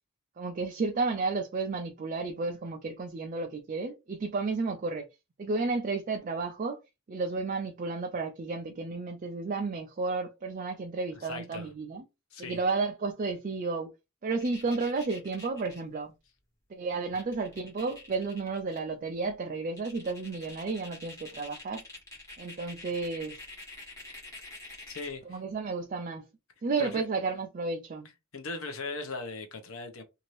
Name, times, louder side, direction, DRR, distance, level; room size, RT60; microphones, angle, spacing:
voice 1, 0.4-5.0 5.4-6.8 7.1-12.0 12.4-13.9 14.2-16.1 16.7-21.8 22.4-23.4 25.3-26.2 26.6-28.1, right 3 dB, 40° right, 0.4 m, -32 dB
voice 2, 11.1-11.7 12.3-12.6 24.4-24.5 24.9-25.4 26.8-27.1 28.3-30.0, left 3 dB, 70° left, 0.8 m, -39 dB
sound 1, 14.4-15.8 16.9-17.0 17.1-18.8 19.2-19.3 19.8-25.2, left 2 dB, 15° left, 1.4 m, -47 dB
2.8 x 2.6 x 3.1 m
head